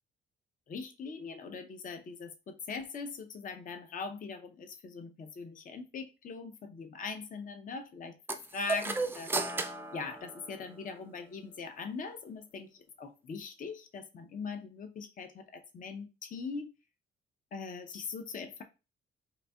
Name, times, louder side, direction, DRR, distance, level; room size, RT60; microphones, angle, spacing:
voice 1, 0.7-8.2 8.5-9.3 9.9-12.7 13.0-16.7 17.5-18.6, left 4 dB, 45° left, 0.5 m, -41 dB
sound 1, 8.3-11.0, right 3 dB, 10° right, 0.3 m, -35 dB
3.9 x 2.6 x 2.2 m
cardioid pair, 90°, 20 cm